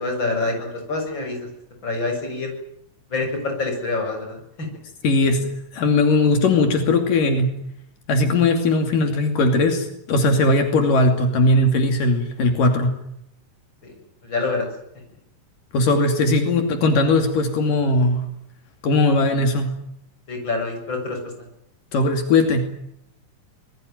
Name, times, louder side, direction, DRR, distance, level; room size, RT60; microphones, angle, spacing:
voice 1, 0.0-1.5 1.8-2.5 3.1-4.7 13.8-13.9 14.2-14.7 20.3-21.3, left 3 dB, 35° left, 3 dB, 8.3 m, -26 dB
voice 2, 5.0-7.5 8.1-12.9 15.7-18.2 18.8-19.8 21.9-22.7, left 2 dB, 80° left, 5 dB, 4.3 m, -19 dB
27.0 x 21.0 x 9.4 m, 0.78 s
omnidirectional pair, 3.8 m